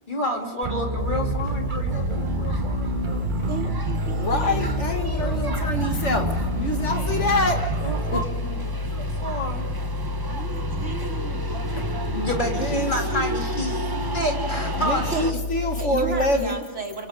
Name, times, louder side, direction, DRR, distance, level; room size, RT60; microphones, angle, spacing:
voice 1, 0.1-3.5 5.2-5.8 7.0-7.1 7.8-8.6 8.9-9.7 12.1-15.4, left 1 dB, 40° left, 0 dB, 3.2 m, -30 dB
sound 1, 0.6-8.2, right 2 dB, 45° right, 1.4 m, -28 dB
sound 2, 1.0-16.3, left 3 dB, 60° left, 2.4 m, -30 dB
sound 3, 1.9-15.3, right 2 dB, 20° right, 0.9 m, -34 dB
voice 2, 3.5-5.6 10.3-12.0 15.1-15.3 15.5-17.1, right 5 dB, 80° right, 1 dB, 3.0 m, -35 dB
voice 3, 4.2-7.6 8.1-8.2 11.7-11.9 12.2-12.9 14.8-16.6, left 1 dB, 75° left, 4 dB, 2.3 m, -26 dB
30.0 x 24.5 x 3.7 m, 1.1 s
omnidirectional pair, 1.2 m